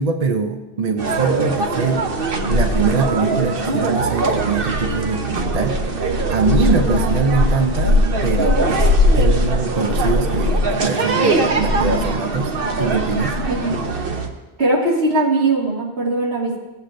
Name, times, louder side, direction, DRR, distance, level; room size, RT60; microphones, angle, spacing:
voice 1, 0.0-2.1 2.5-12.5 12.8-13.4, right 4 dB, 45° right, 5 dB, 0.6 m, -23 dB
sound 1, 1.0-14.3, right 1 dB, 60° right, 1.1 m, -20 dB
voice 2, 6.7-7.0 13.5-13.7 14.6-16.6, right 2 dB, 75° right, -3 dB, 2.2 m, -20 dB
16.0 x 8.1 x 2.5 m, 1.0 s
omnidirectional pair, 1.1 m